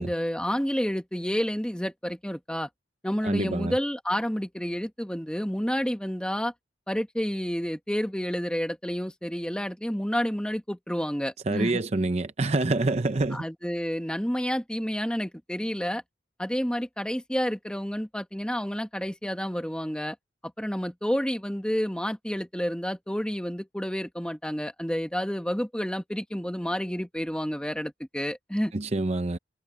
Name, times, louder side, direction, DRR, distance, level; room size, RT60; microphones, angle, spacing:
voice 1, 0.0-2.7 3.0-6.5 6.9-11.8 13.3-16.0 16.4-20.1 20.4-28.7, equal, 5° left, 1.4 m, -30 dB
voice 2, 3.2-3.7 11.5-13.4 28.7-29.4, right 2 dB, 35° right, 0.7 m, -26 dB
head